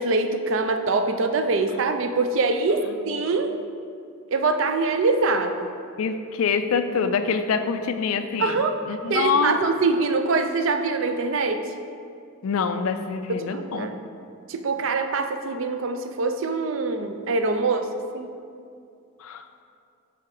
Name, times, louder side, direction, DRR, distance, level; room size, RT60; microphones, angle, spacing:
voice 1, 0.0-3.6 4.3-5.7 8.4-8.8 9.1-11.6 13.3-14.0 14.5-18.3, right 3 dB, 60° right, 7 dB, 0.4 m, -24 dB
voice 2, 6.0-9.6 12.4-13.9 19.2-19.5, left 5 dB, 70° left, 9 dB, 0.4 m, -25 dB
5.9 x 4.6 x 4.8 m, 2.4 s
head